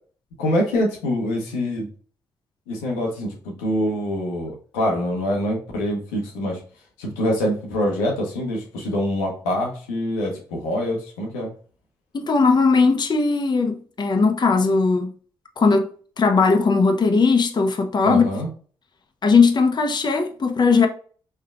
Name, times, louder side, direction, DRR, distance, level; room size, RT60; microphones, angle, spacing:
voice 1, 0.4-1.9 2.7-6.6 7.0-11.5 18.0-18.5, equal, 90° left, 0.9 m, -25 dB
voice 2, 12.1-15.1 15.6-15.9 16.2-18.2 19.2-20.9, left 4 dB, 40° left, 0.7 m, -18 dB
4.5 x 3.3 x 2.4 m
hypercardioid pair, 40°, 11 cm